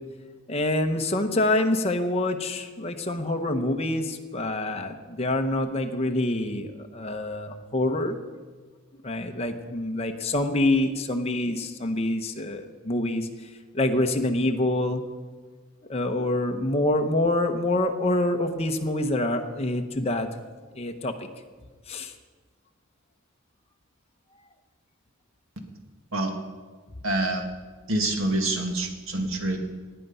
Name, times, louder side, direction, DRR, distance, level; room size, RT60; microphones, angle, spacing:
voice 1, 0.5-8.2 9.0-13.3 13.7-15.0 15.9-20.3 20.8-21.1 21.9-22.1, left 1 dB, 30° left, 4 dB, 1.0 m, -26 dB
voice 2, 27.0-27.4 27.9-29.6, right 2 dB, 65° right, 3 dB, 1.9 m, -26 dB
19.0 x 9.0 x 5.6 m, 1.5 s
head